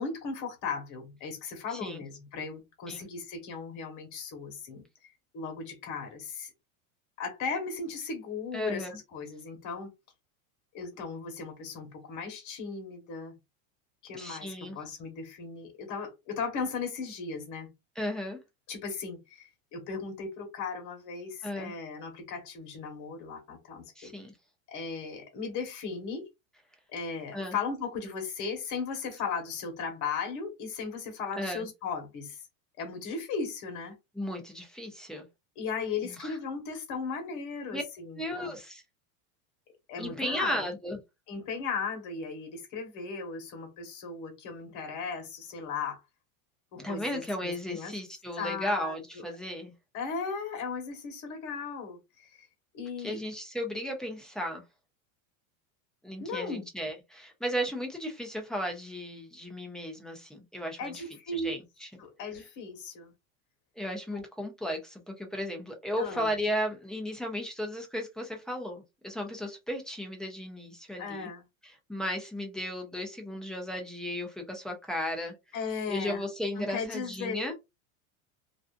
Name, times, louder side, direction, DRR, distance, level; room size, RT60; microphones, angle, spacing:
voice 1, 0.0-4.8 5.3-6.5 7.2-9.9 10.7-13.3 14.0-17.7 18.7-24.1 24.7-26.2 26.9-32.4 32.8-33.9 35.6-38.5 39.9-40.6 41.3-46.0 46.7-47.9 48.4-49.2 49.9-52.3 52.7-53.2 56.2-56.7 60.8-61.5 62.0-63.1 64.1-64.2 66.0-66.3 71.0-71.4 75.5-76.2 76.5-77.4, left 5 dB, 45° left, 1.3 m, -37 dB
voice 2, 1.7-2.0 2.9-3.1 8.5-8.9 14.1-14.8 18.0-18.4 21.4-21.7 24.0-24.3 27.3-27.6 31.4-31.7 34.2-35.2 36.0-36.4 37.7-37.8 38.1-38.8 40.0-41.0 46.8-49.7 53.0-54.6 56.0-61.0 61.3-61.9 63.8-71.3 71.6-75.3 75.9-77.5, equal, ahead, 0.4 m, -35 dB
2.5 x 2.4 x 2.4 m
supercardioid pair, 135°, 43 cm